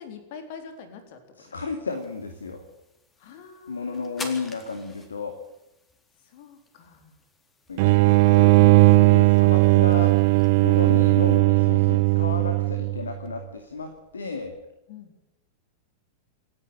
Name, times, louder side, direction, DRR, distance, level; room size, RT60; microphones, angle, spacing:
voice 1, 0.0-1.2 3.2-4.3 6.2-7.2 8.6-9.0 10.8-11.1 14.9-15.2, left 6 dB, 50° left, 6 dB, 3.8 m, -43 dB
voice 2, 1.4-2.6 3.7-5.3 7.7-8.6 8.9-14.5, left 4 dB, 70° left, 6 dB, 2.5 m, -33 dB
sound 1, 1.9-11.4, left 3 dB, 20° left, 3.9 m, -48 dB
sound 2, 7.8-13.1, right 23 dB, 50° right, 0.6 m, -17 dB
27.5 x 11.0 x 9.0 m, 0.91 s
figure-of-eight pair, 90°, 0 cm